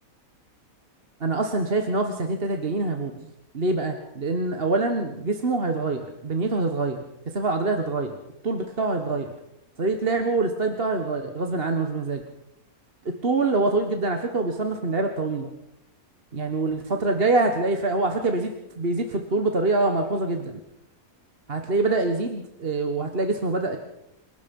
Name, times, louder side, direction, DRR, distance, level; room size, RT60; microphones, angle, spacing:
voice 1, 1.2-3.3 3.5-7.0 7.3-8.2 8.4-9.3 9.8-12.2 13.0-15.5 16.3-20.6 21.5-23.8, right 3 dB, 40° right, 5 dB, 1.6 m, -25 dB
27.5 x 18.0 x 5.5 m, 0.82 s
omnidirectional pair, 1.6 m